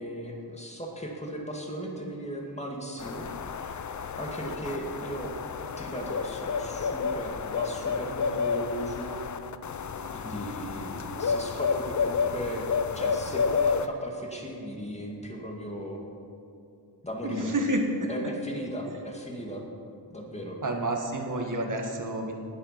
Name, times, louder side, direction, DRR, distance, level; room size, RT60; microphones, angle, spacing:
voice 1, 0.0-3.3 3.6-3.8 4.2-9.2 10.1-16.0 17.0-17.5 18.1-19.6 20.1-20.6, equal, 15° left, 0 dB, 2.2 m, -37 dB
sound 1, 3.0-13.9, left 5 dB, 45° left, 0.6 m, -30 dB
voice 2, 17.2-18.3 18.9-19.0 20.6-22.3, right 1 dB, 50° right, 3 dB, 1.9 m, -29 dB
19.0 x 8.1 x 5.9 m, 2.6 s
wide cardioid pair, 130°, 41 cm